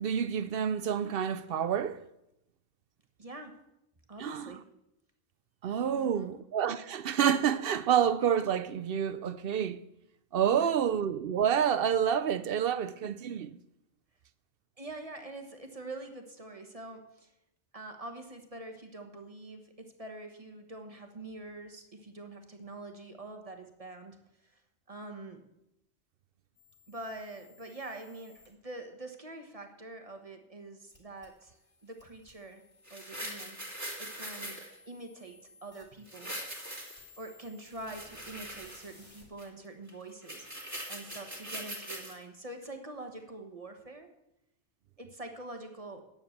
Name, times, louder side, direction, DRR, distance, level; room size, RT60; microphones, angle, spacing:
voice 1, 0.0-2.0 4.2-4.4 5.6-9.8 10.3-13.6, right 8 dB, 65° right, 0.7 m, -28 dB
voice 2, 3.2-3.6 4.1-4.6 5.9-6.4 10.5-10.8 14.8-17.3 17.7-24.2 24.4-24.6 24.9-25.4 26.9-32.6 32.9-33.6 34.0-34.6 34.9-36.3 37.2-44.1 45.0-46.0, right 2 dB, 35° right, 1.2 m, -45 dB
sound 1, 26.5-28.5 30.9-39.2, left 4 dB, 30° left, 3.0 m, -59 dB
sound 2, 32.9-34.7 36.1-37.2 37.7-39.1 39.4-39.5 39.9-40.0 40.2-42.1 42.6-42.7, equal, 15° right, 2.5 m, -41 dB
9.7 x 7.1 x 7.9 m
omnidirectional pair, 1.2 m